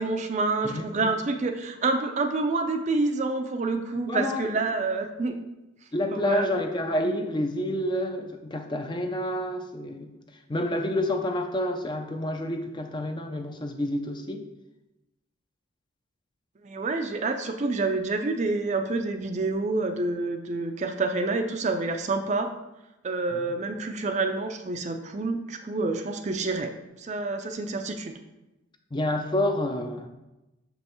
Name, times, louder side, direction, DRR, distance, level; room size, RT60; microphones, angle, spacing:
voice 1, 0.0-5.4 6.1-6.5 16.6-22.5 23.0-26.7 27.0-28.2, right 3 dB, 35° right, 6 dB, 0.4 m, -28 dB
voice 2, 4.1-4.5 5.9-10.1 10.5-14.5 23.3-23.4 28.9-30.1, left 1 dB, 25° left, 6 dB, 0.4 m, -28 dB
6.2 x 5.3 x 3.0 m, 0.97 s
head